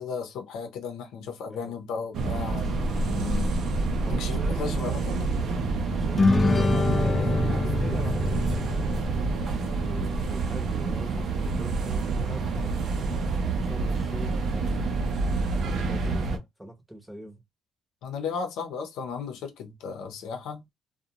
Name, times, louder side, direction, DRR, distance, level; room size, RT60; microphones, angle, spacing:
voice 1, 0.0-3.6 4.1-5.5 18.0-20.6, left 6 dB, 85° left, 0.7 m, -35 dB
voice 2, 1.5-1.8 4.0-5.2 6.0-8.7 9.6-13.1 13.6-14.9 15.6-17.4, equal, 5° right, 0.8 m, -42 dB
sound 1, 2.1-16.4, right 3 dB, 60° right, 0.6 m, -27 dB
sound 2, 6.2-9.8, left 3 dB, 25° left, 0.4 m, -25 dB
2.5 x 2.2 x 2.8 m
cardioid pair, 125°, 0 cm